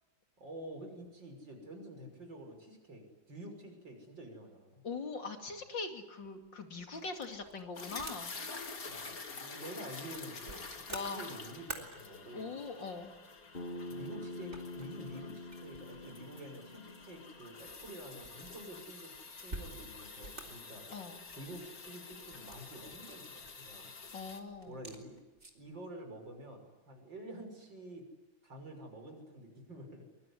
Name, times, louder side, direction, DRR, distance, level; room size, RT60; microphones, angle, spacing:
voice 1, 0.4-4.7 8.8-12.6 13.9-19.1 19.4-20.9 21.4-23.9 24.7-25.2 25.6-28.1 28.4-30.1, right 1 dB, 70° right, 4 dB, 6.9 m, -48 dB
voice 2, 4.8-8.3 10.9-11.3 12.3-13.2 20.9-21.2 24.1-24.8, left 4 dB, 70° left, 6 dB, 3.3 m, -41 dB
sound 1, 6.2-25.8, right 2 dB, 35° right, 3.9 m, -53 dB
sound 2, 7.7-24.4, left 4 dB, 45° left, 2.7 m, -48 dB
Bass guitar, 13.5-17.8, left 1 dB, 30° left, 3.1 m, -46 dB
24.0 x 23.5 x 10.0 m, 1.1 s
omnidirectional pair, 2.1 m